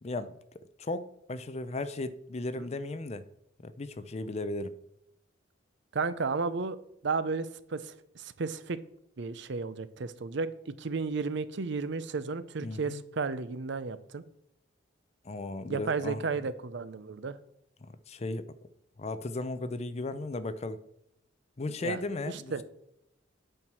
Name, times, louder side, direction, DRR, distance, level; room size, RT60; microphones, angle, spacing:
voice 1, 0.0-0.4 0.8-3.3 3.6-4.7 12.6-13.0 15.2-16.2 17.9-18.4 19.0-20.8 21.6-22.6, left 2 dB, 35° left, 0.5 m, -36 dB
voice 2, 5.9-6.8 7.0-8.8 9.2-14.2 15.7-17.4 21.8-22.0 22.3-22.6, right 4 dB, 65° right, 0.6 m, -33 dB
8.9 x 4.6 x 6.1 m
head